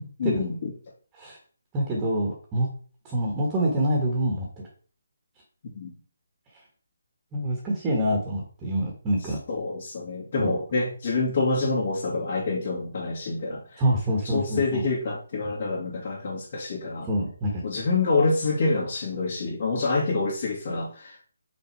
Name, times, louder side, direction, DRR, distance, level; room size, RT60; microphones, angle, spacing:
voice 1, 0.2-0.7 5.6-5.9 9.2-13.8 14.2-17.1 17.6-21.2, left 3 dB, 45° left, -7 dB, 2.5 m, -27 dB
voice 2, 1.7-2.7 3.0-4.5 7.3-9.4 10.4-10.5 13.8-14.8 17.1-17.6, right 1 dB, 15° right, -1 dB, 1.5 m, -26 dB
6.0 x 4.1 x 4.7 m, 0.42 s
hypercardioid pair, 160°, 0 cm